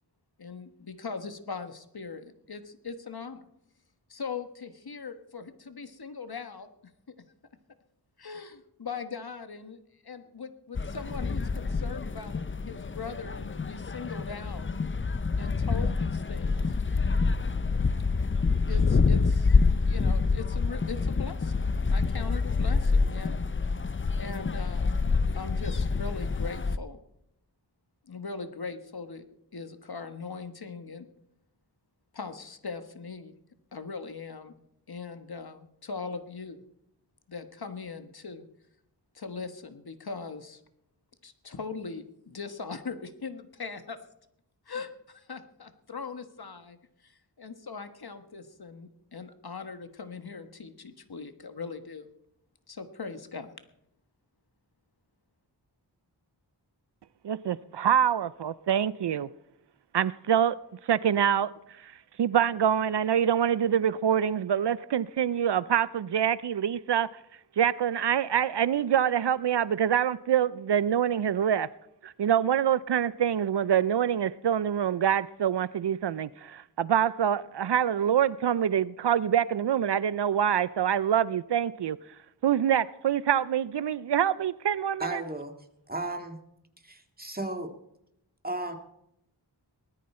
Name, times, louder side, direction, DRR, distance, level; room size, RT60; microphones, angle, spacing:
voice 1, 0.4-3.4 4.1-7.1 8.2-14.7 15.4-16.7 18.7-19.6 19.8-23.4 24.1-25.1 25.3-27.0 28.1-29.2 29.5-31.1 32.1-33.3 33.7-34.6 34.9-36.6 37.3-38.5 39.1-40.6 41.2-44.0 44.7-46.8 47.0-52.1 52.7-53.5, left 4 dB, 60° left, 1.3 m, -40 dB
sound 1, 10.7-26.8, left 4 dB, 30° left, 0.5 m, -27 dB
voice 2, 57.2-59.3 59.9-60.6 60.9-61.5 61.8-61.9 62.2-67.1 67.6-71.7 72.0-82.0 82.4-85.2, right 9 dB, 70° right, 0.5 m, -25 dB
voice 3, 85.0-85.5 85.9-86.4 86.8-87.7 88.4-88.7, right 2 dB, 20° right, 2.1 m, -34 dB
19.5 x 13.0 x 4.3 m
wide cardioid pair, 65°, 43 cm